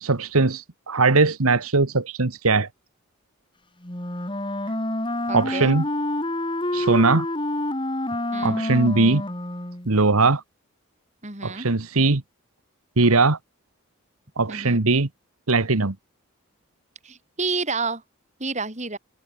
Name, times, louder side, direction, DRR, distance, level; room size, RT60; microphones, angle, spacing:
voice 1, 0.0-2.7 5.3-5.8 6.7-7.3 8.4-9.2 9.8-10.4 11.4-12.2 13.0-13.4 14.4-15.1 15.5-15.9, right 3 dB, 80° right, 1.5 m, -20 dB
Wind instrument woodwind instrument, 3.8-9.9, left 1 dB, 25° left, 2.4 m, -28 dB
voice 2, 5.3-5.7 8.3-8.6 11.2-11.7 14.5-14.8 17.0-18.0 18.4-19.0, right 4 dB, 30° right, 4.6 m, -29 dB
head